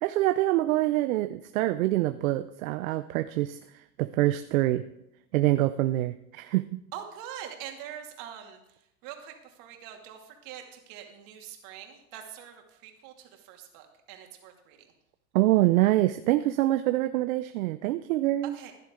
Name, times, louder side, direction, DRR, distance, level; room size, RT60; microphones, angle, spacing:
voice 1, 0.0-3.6 4.0-4.8 5.3-6.8 15.3-18.5, right 16 dB, 75° right, 11 dB, 0.7 m, -25 dB
voice 2, 6.9-14.9 18.5-18.7, right 9 dB, 55° right, 3 dB, 2.5 m, -44 dB
15.5 x 11.0 x 3.8 m, 0.85 s
hypercardioid pair, 115°, 41 cm